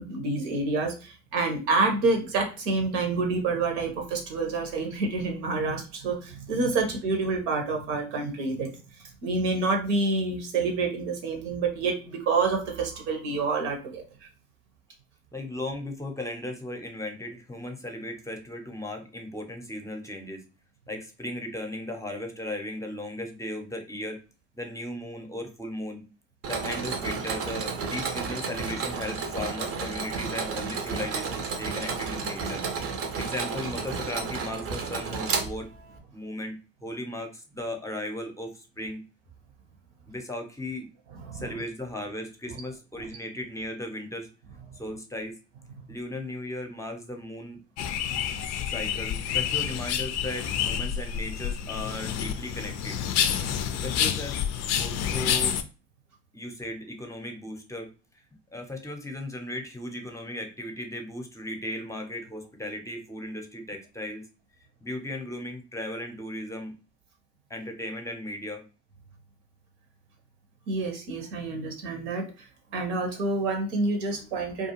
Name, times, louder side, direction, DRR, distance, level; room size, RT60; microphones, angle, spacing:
voice 1, 0.0-8.7 9.2-14.3 41.2-41.5 43.0-43.1 70.7-72.4 72.7-74.7, right 3 dB, 70° right, 3 dB, 0.9 m, -28 dB
voice 2, 15.3-20.4 20.9-24.2 24.5-26.0 26.4-32.6 33.2-35.7 36.1-36.5 36.8-39.0 40.1-40.9 41.3-44.3 44.8-45.4 45.9-47.6 48.7-53.0 53.8-54.4 54.8-55.6 56.3-57.9 58.5-64.2 64.8-66.7 67.5-68.6, left 1 dB, 10° left, 3 dB, 0.7 m, -36 dB
Mechanisms, 26.4-36.0, right 5 dB, 45° right, 0.6 m, -32 dB
sound 1, 47.8-55.6, left 9 dB, 50° left, 0.4 m, -28 dB
2.4 x 2.3 x 2.9 m, 0.33 s
hypercardioid pair, 65°, 34 cm